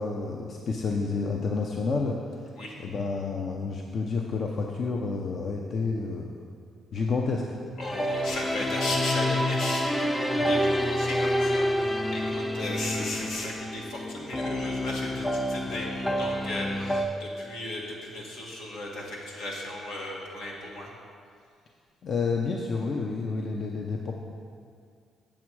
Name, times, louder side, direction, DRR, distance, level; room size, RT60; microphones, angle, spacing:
voice 1, 0.0-2.2 2.8-6.3 6.9-7.4 22.0-24.1, left 4 dB, 55° left, 1 dB, 0.6 m, -29 dB
voice 2, 7.8-20.9, left 1 dB, 85° left, -2 dB, 1.7 m, -35 dB
sound 1, 7.8-17.1, equal, 10° left, 0.5 m, -28 dB
7.4 x 7.4 x 4.7 m, 2.2 s
cardioid pair, 90°, 0 cm